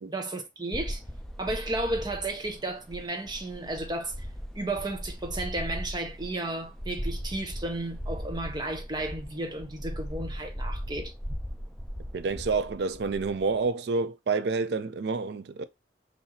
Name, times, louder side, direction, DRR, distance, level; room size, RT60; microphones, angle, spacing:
voice 1, 0.0-1.0 1.4-4.3 4.5-11.1, right 2 dB, 20° right, 0.8 m, -33 dB
sound 1, 0.7-13.7, equal, ahead, 0.4 m, -38 dB
voice 2, 12.1-15.6, right 4 dB, 60° right, 0.4 m, -28 dB
5.6 x 2.7 x 2.8 m
head